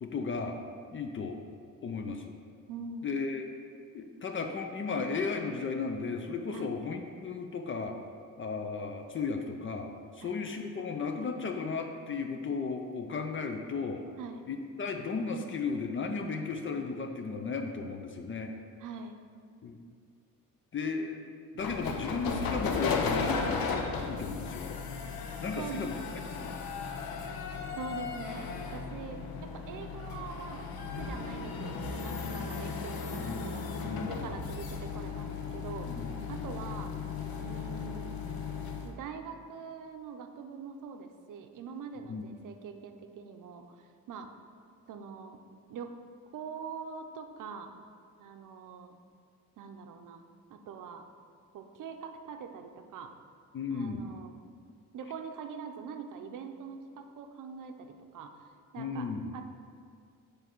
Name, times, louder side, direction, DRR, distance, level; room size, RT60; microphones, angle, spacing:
voice 1, 0.0-0.6 0.9-1.4 1.8-2.3 3.0-3.5 3.9-7.9 8.4-9.9 10.2-14.0 14.5-18.5 19.6-19.8 20.7-21.2 21.5-23.8 24.1-24.8 25.4-26.0 26.4-26.6 32.2-32.3 33.1-33.4 33.8-34.2 35.9-36.1 42.1-42.2 53.5-54.1 58.8-59.4, left 4 dB, 35° left, 4 dB, 0.5 m, -35 dB
voice 2, 2.7-3.1 6.5-6.7 10.2-10.4 14.2-14.5 18.8-19.2 25.6-25.9 27.8-36.9 37.4-38.2 38.8-44.3 44.9-45.4 45.7-45.9 46.3-47.7 48.2-49.0 49.6-50.2 50.5-51.1 51.5-53.1 53.7-54.4 54.9-58.4 58.7-59.5, right 6 dB, 65° right, 6 dB, 0.6 m, -43 dB
sound 1, 21.6-38.9, left 5 dB, 90° left, 0.7 m, -36 dB
9.1 x 3.3 x 4.5 m, 2.2 s
cardioid pair, 135°, 34 cm